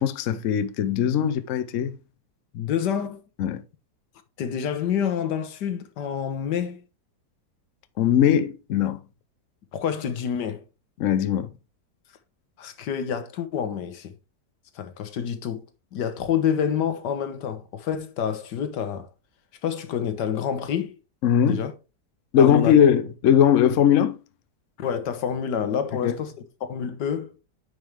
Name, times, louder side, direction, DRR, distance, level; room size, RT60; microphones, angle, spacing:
voice 1, 0.0-2.0 3.4-3.6 8.0-9.0 11.0-11.5 21.2-21.6 22.3-24.2 26.0-26.1, left 9 dB, 65° left, 0.8 m, -20 dB
voice 2, 2.5-3.2 4.4-6.8 9.7-10.6 12.6-14.1 14.7-15.6 15.9-19.1 19.6-20.9 21.5-21.7 22.4-22.8 24.8-26.3 26.6-27.3, left 8 dB, 80° left, 1.6 m, -28 dB
9.6 x 5.4 x 3.3 m
omnidirectional pair, 1.8 m